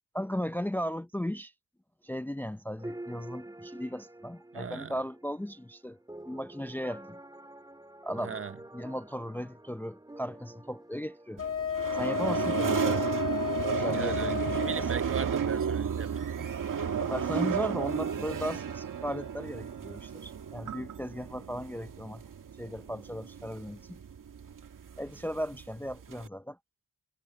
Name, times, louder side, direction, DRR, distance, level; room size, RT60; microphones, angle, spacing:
voice 1, 0.1-1.5 2.0-6.0 6.3-7.2 8.0-8.4 8.7-11.4 12.0-13.1 13.8-14.7 17.0-22.2 22.6-24.0 25.0-26.6, equal, 5° left, 0.6 m, -36 dB
sound 1, 2.8-13.8, right 1 dB, 10° right, 2.2 m, -48 dB
voice 2, 4.5-4.9 8.2-8.6 13.9-16.6, right 6 dB, 35° right, 0.9 m, -39 dB
Wind instrument woodwind instrument, 11.4-15.0, left 8 dB, 40° left, 1.4 m, -32 dB
sound 2, 11.4-26.3, right 7 dB, 55° right, 2.0 m, -33 dB
cardioid pair, 80°, 37 cm